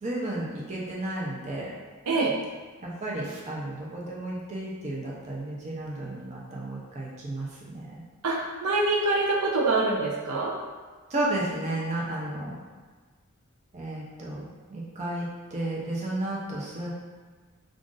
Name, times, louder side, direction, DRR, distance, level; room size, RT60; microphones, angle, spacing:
voice 1, 0.0-1.8 2.8-8.0 11.1-12.6 13.7-16.9, right 1 dB, 30° right, -5 dB, 0.6 m, -33 dB
voice 2, 8.2-10.5, right 3 dB, 85° right, -2 dB, 0.5 m, -25 dB
2.5 x 2.4 x 3.8 m, 1.5 s
head